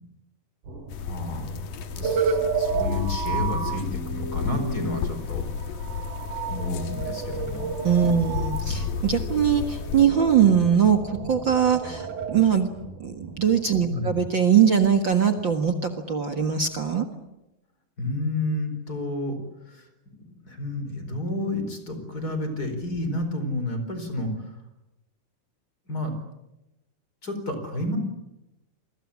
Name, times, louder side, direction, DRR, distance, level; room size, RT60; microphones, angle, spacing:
sound 1, 0.6-16.8, right 2 dB, 65° right, 6.5 m, -43 dB
sound 2, 0.9-10.1, left 7 dB, 80° left, 3.3 m, -32 dB
voice 1, 1.0-1.5 1.9-7.7 8.1-8.8 13.9-14.2 18.0-19.4 19.6-19.9 20.1-24.6 25.9-26.1 27.2-28.0, left 1 dB, 25° left, 8 dB, 4.6 m, -31 dB
sound 3, 2.0-12.4, right 5 dB, 85° right, 4.5 m, -31 dB
voice 2, 7.8-12.7 13.0-17.1, right 8 dB, 45° right, 6 dB, 1.7 m, -21 dB
28.5 x 23.0 x 8.7 m, 0.94 s
omnidirectional pair, 4.0 m